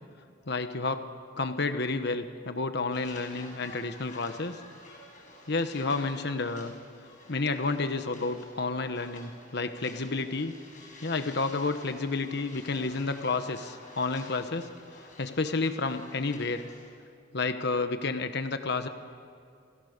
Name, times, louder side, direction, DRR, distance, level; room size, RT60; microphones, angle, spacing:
voice 1, 0.5-1.0 1.4-4.6 5.5-6.7 7.3-10.5 11.0-14.7 15.2-16.6 17.3-18.9, left 3 dB, 60° left, 8 dB, 1.2 m, -30 dB
sound 1, 2.9-16.9, left 2 dB, 40° left, 6.7 m, -50 dB
29.0 x 28.5 x 6.8 m, 2.5 s
head